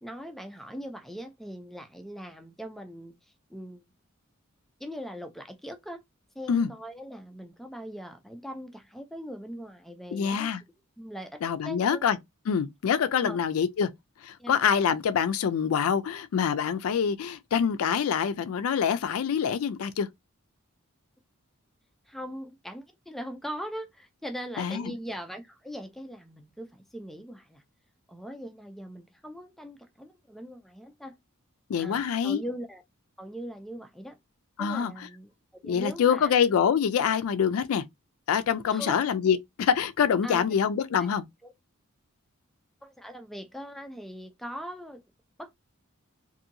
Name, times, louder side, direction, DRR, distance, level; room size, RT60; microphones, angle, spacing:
voice 1, 0.0-3.1 3.5-3.8 4.8-6.0 6.4-10.5 11.0-12.1 13.1-13.4 14.4-14.5 22.1-27.6 28.1-31.2 31.8-32.8 33.2-34.2 34.6-36.3 38.7-39.0 40.2-40.4 40.9-41.1 41.4-41.5 42.8-45.0 45.4-45.5, equal, ahead, 0.4 m, -40 dB
voice 2, 10.1-10.6 11.4-12.2 12.5-13.9 14.5-20.1 24.6-24.9 31.7-32.4 34.6-34.9 35.6-37.8 38.3-41.2, left 7 dB, 75° left, 0.4 m, -25 dB
2.7 x 2.6 x 2.5 m
head